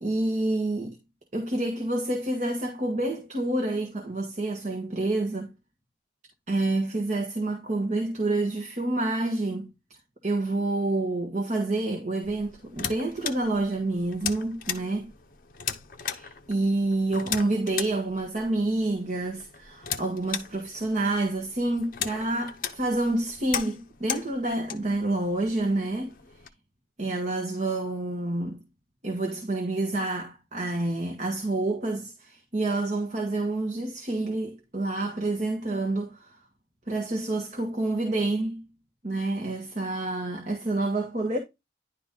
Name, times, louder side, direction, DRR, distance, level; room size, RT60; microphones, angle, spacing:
voice 1, 0.0-1.0 1.3-5.5 6.5-9.7 10.2-15.1 16.0-26.1 27.0-28.6 29.0-36.3 36.9-38.6 39.0-41.4, right 2 dB, 40° right, 1.4 m, -28 dB
sound 1, 12.2-26.5, left 8 dB, 50° left, 0.8 m, -38 dB
10.5 x 4.1 x 3.7 m
head